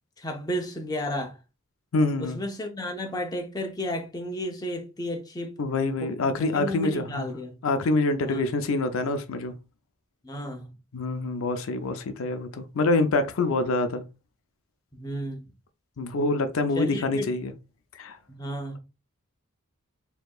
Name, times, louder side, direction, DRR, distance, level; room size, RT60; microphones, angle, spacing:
voice 1, 0.2-1.4 2.2-5.5 6.0-7.6 8.3-8.4 10.2-10.7 14.9-15.5 16.7-17.3 18.3-18.8, equal, 20° left, 0.6 m, -33 dB
voice 2, 1.9-2.4 5.6-7.3 7.6-9.5 10.9-14.0 16.0-17.5 18.0-18.2, left 2 dB, 70° left, 0.5 m, -26 dB
4.5 x 2.8 x 2.3 m
head